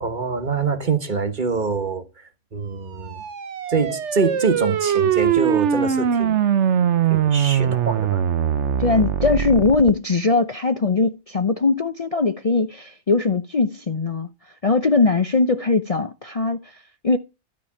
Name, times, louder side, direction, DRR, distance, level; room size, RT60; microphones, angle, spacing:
voice 1, 0.0-2.2 2.5-3.2 3.7-6.4 7.1-8.2, right 4 dB, 40° right, 1.4 m, -25 dB
sound 1, 3.0-9.9, right 8 dB, 70° right, 1.2 m, -21 dB
voice 2, 8.8-14.3 14.6-17.2, left 3 dB, 35° left, 0.6 m, -20 dB
13.0 x 5.0 x 8.5 m
omnidirectional pair, 1.3 m